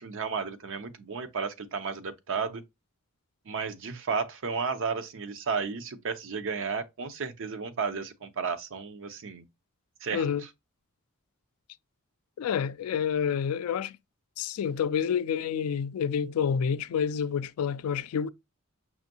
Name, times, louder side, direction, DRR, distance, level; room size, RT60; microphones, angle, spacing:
voice 1, 0.0-2.6 3.5-9.4 10.0-10.3, right 5 dB, 65° right, 0.6 m, -33 dB
voice 2, 10.1-10.4 12.4-14.0 14.4-18.3, left 7 dB, 85° left, 0.3 m, -28 dB
5.6 x 2.6 x 2.7 m
head